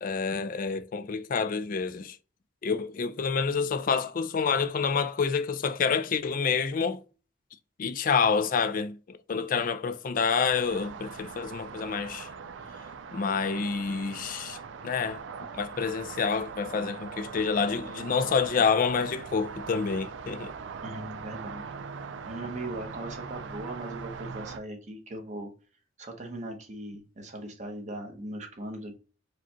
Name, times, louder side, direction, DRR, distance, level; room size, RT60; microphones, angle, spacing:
voice 1, 0.0-2.2 2.6-7.0 7.8-12.3 13.1-14.6 14.8-15.2 15.5-20.5, left 5 dB, 45° left, 0.4 m, -28 dB
sound 1, 10.4-24.6, right 5 dB, 80° right, 0.4 m, -41 dB
voice 2, 20.8-21.7 22.3-25.5 26.0-29.0, right 1 dB, 40° right, 1.0 m, -39 dB
4.8 x 2.3 x 2.8 m
head